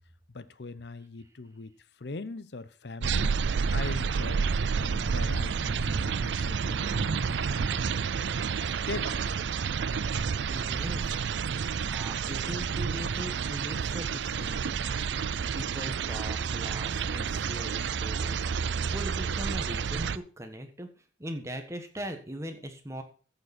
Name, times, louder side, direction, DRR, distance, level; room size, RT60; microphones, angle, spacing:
voice 1, 0.3-1.7 2.0-4.5 4.8-8.4 8.9-9.2, left 3 dB, 60° left, 0.7 m, -41 dB
sound 1, 3.0-20.2, right 6 dB, 70° right, 0.4 m, -30 dB
voice 2, 10.5-11.1 11.9-20.9 21.2-23.0, equal, 15° right, 1.4 m, -40 dB
14.0 x 6.8 x 4.3 m
head